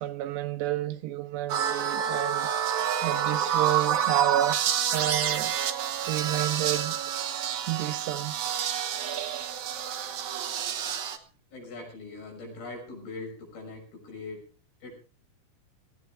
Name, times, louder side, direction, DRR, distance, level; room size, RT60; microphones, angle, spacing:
voice 1, 0.0-2.5 3.0-4.6 4.9-5.5 6.1-7.0 7.7-8.4, right 13 dB, 85° right, 3.2 m, -30 dB
sound 1, 1.5-11.2, right 9 dB, 65° right, 2.0 m, -28 dB
voice 2, 11.5-14.5 14.8-14.9, left 3 dB, 65° left, 8.1 m, -41 dB
18.5 x 16.5 x 3.6 m
omnidirectional pair, 4.8 m